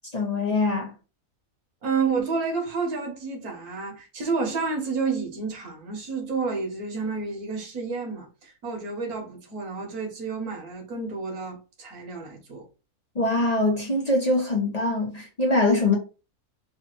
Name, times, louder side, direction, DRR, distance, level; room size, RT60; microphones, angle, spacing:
voice 1, 0.1-0.9 13.1-16.0, left 2 dB, 30° left, 0.9 m, -23 dB
voice 2, 1.8-12.7, right 4 dB, 85° right, 1.7 m, -30 dB
3.6 x 2.5 x 4.4 m
omnidirectional pair, 1.5 m